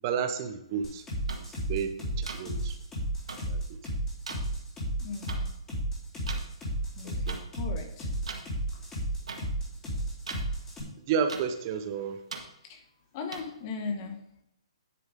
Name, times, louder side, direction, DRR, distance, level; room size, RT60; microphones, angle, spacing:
voice 1, 0.0-1.0 1.7-2.8 3.5-3.6 7.0-7.4 11.1-12.2, right 7 dB, 35° right, 8 dB, 0.9 m, -31 dB
sound 1, 0.8-10.8, right 1 dB, 15° left, 4.2 m, -32 dB
sound 2, 1.3-1.4 2.3-2.4 3.3-3.4 4.3-4.4 5.3-5.4 6.3-6.4 7.3-7.4 8.3-8.4 9.3-9.4 10.3-10.4 11.3-11.4 12.3-12.4 13.3-13.4, right 4 dB, 75° right, 1.8 m, -37 dB
voice 2, 5.0-5.5 7.0-8.1 8.7-8.8 12.6-12.8 13.1-14.4, left 5 dB, 35° left, 4 dB, 1.9 m, -38 dB
10.5 x 7.3 x 3.7 m, 0.81 s
hypercardioid pair, 140°, 3 cm